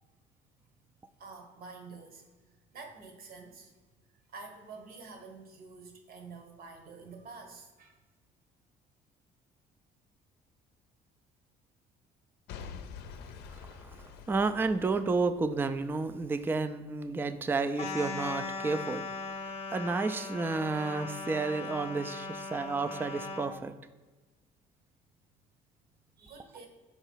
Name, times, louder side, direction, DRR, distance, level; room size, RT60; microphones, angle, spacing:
voice 1, 1.2-3.7 4.3-8.0 26.2-26.7, right 4 dB, 60° right, 4 dB, 1.2 m, -48 dB
Boom / Shatter / Crushing, 12.5-16.5 17.0-17.1, left 6 dB, 80° left, 0.5 m, -47 dB
voice 2, 13.5-19.1 19.4-23.7, right 3 dB, 10° right, 11 dB, 0.3 m, -31 dB
sound 1, 17.7-23.5, left 4 dB, 40° left, 0.7 m, -39 dB
5.7 x 3.9 x 4.5 m, 1.3 s
cardioid pair, 110°, 17 cm